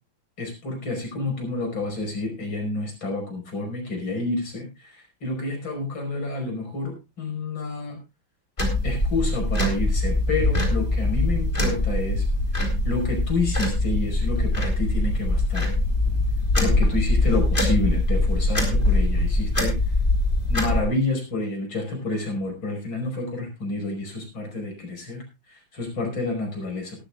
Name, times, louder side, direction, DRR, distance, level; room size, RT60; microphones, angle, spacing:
voice 1, 0.4-8.0 8.8-12.3 12.8-15.7 16.6-19.7 20.5-27.0, left 2 dB, 85° left, 2 dB, 5.8 m, -29 dB
sound 1, 8.6-20.8, left 2 dB, 25° left, 3.5 m, -22 dB
18.5 x 13.0 x 2.4 m, 0.26 s
omnidirectional pair, 2.1 m